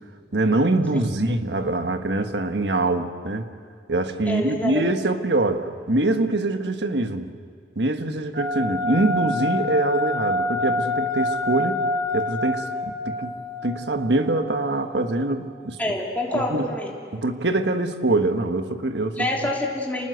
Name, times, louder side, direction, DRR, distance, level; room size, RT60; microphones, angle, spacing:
voice 1, 0.3-3.5 3.9-7.3 7.7-11.8 12.1-13.3 13.6-15.8 16.3-16.7 17.1-19.3, right 2 dB, 85° right, 7 dB, 1.5 m, -24 dB
voice 2, 4.3-4.8 15.8-16.9 19.1-20.1, left 1 dB, 10° left, -2 dB, 3.2 m, -27 dB
sound 1, 8.3-15.0, left 2 dB, 60° right, 6.3 m, -27 dB
29.5 x 19.5 x 8.0 m, 2.2 s
head